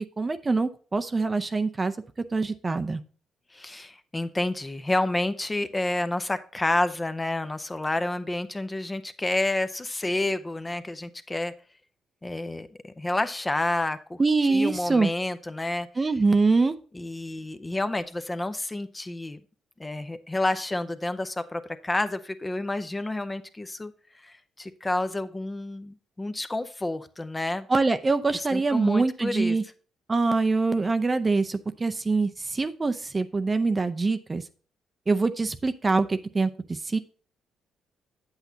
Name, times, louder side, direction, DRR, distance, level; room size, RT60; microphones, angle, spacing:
voice 1, 0.2-1.9 2.3-3.0 14.2-15.1 16.0-16.7 27.7-29.6 30.1-34.4 35.1-37.0, right 3 dB, 25° right, 9 dB, 0.6 m, -24 dB
voice 2, 3.5-11.5 12.2-14.2 14.5-15.9 16.9-19.4 19.8-23.9 24.2-27.7 28.3-29.6, left 2 dB, 20° left, 11 dB, 0.6 m, -29 dB
8.1 x 7.9 x 2.7 m, 0.40 s
cardioid pair, 90°, 0 cm